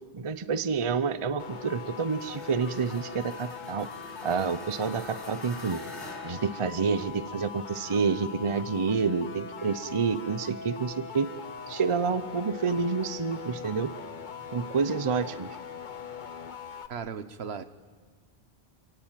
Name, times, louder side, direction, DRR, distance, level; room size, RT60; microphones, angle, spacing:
voice 1, 0.1-3.9 4.2-5.8 6.2-11.3 11.7-13.9 14.5-15.5, right 5 dB, 30° right, 13 dB, 0.7 m, -28 dB
sound 1, 1.4-16.9, left 6 dB, 45° left, 1.0 m, -41 dB
sound 2, 2.1-7.3, left 2 dB, 80° left, 4.3 m, -47 dB
voice 2, 16.9-17.6, right 6 dB, 70° right, 12 dB, 1.2 m, -36 dB
28.5 x 17.5 x 9.1 m, 1.5 s
omnidirectional pair, 1.1 m